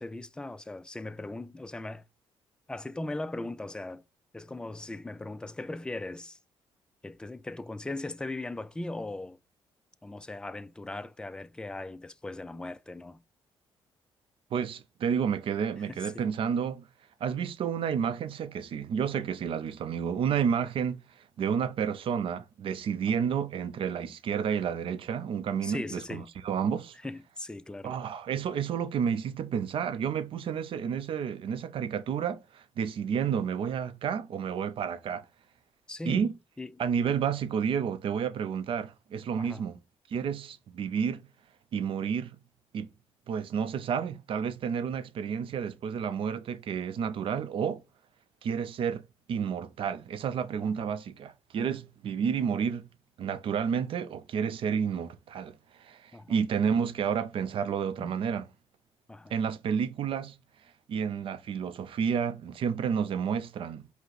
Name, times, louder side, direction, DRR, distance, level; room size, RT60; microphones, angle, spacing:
voice 1, 0.0-2.0 2.7-4.0 4.3-6.4 7.0-9.4 10.0-13.2 15.8-16.2 25.6-26.3 27.0-27.9 35.9-36.8 39.4-39.6 50.6-50.9 56.1-56.4 58.0-58.2 59.1-59.3, left 2 dB, 10° left, 0.3 m, -39 dB
voice 2, 14.5-16.8 17.2-21.0 21.4-26.9 27.8-35.3 36.1-36.3 36.8-39.8 40.1-41.3 41.7-42.3 42.7-42.9 43.3-47.8 48.4-49.0 49.3-52.9 53.2-58.5 59.3-60.4 60.9-63.9, right 7 dB, 60° right, 0.5 m, -30 dB
5.2 x 2.0 x 4.0 m
cardioid pair, 90°, 10 cm